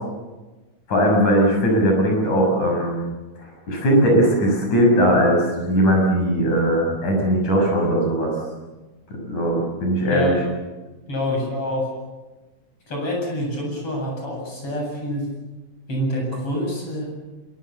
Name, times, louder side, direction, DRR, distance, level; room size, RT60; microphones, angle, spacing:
voice 1, 0.9-3.0 3.7-8.3 9.1-10.3, equal, 75° left, 1 dB, 8.2 m, -19 dB
voice 2, 11.1-11.9 12.9-15.3 15.9-17.1, left 1 dB, 50° left, 0 dB, 9.0 m, -26 dB
26.5 x 23.0 x 7.3 m, 1.2 s
omnidirectional pair, 3.4 m